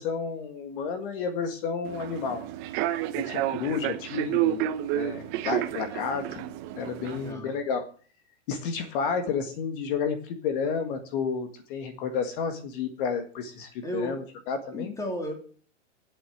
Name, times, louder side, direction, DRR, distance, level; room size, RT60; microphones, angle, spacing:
voice 1, 0.0-2.4 3.2-4.6 4.9-6.4 6.7-7.8 8.5-14.9, left 6 dB, 45° left, 7 dB, 1.8 m, -31 dB
Human voice / Subway metro underground, 1.8-7.3, right 13 dB, 30° right, 0.9 m, -30 dB
voice 2, 7.0-7.6 13.8-14.1 14.7-15.3, equal, 10° left, 2 dB, 3.0 m, -34 dB
10.0 x 8.3 x 9.2 m, 0.43 s
hypercardioid pair, 150°, 36 cm